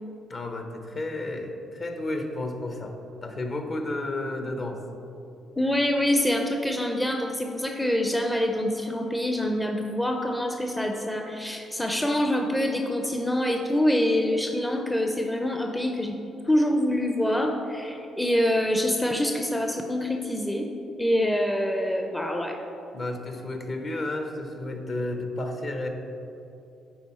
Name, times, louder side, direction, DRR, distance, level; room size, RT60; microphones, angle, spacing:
voice 1, 0.3-4.8 22.9-25.9, left 2 dB, 45° left, 5 dB, 0.8 m, -32 dB
voice 2, 5.6-16.2 16.5-20.7 21.0-22.6, left 1 dB, 10° left, 3 dB, 0.5 m, -25 dB
10.0 x 4.0 x 4.3 m, 2.9 s
cardioid pair, 90°, 0 cm